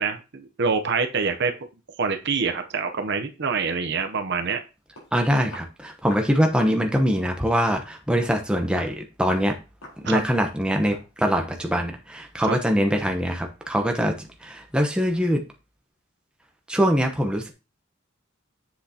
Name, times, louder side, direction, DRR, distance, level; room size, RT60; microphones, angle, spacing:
voice 1, 0.0-1.5 2.0-4.6 10.0-10.2 12.4-12.6, right 5 dB, 55° right, 7 dB, 0.8 m, -25 dB
Walk footsteps, 5.0-5.1 5.5-5.7 6.1-6.3 6.6-6.8 7.1-7.3 7.7-7.9 8.2-8.4 8.7-9.0 9.3-9.5 9.8-10.0 10.3-10.6 10.9-11.1, left 2 dB, 90° left, 4.0 m, -42 dB
voice 2, 5.1-9.6 10.0-14.2 14.4-15.4 16.7-17.5, equal, 5° right, 3 dB, 0.9 m, -23 dB
7.7 x 6.5 x 2.8 m, 0.29 s
head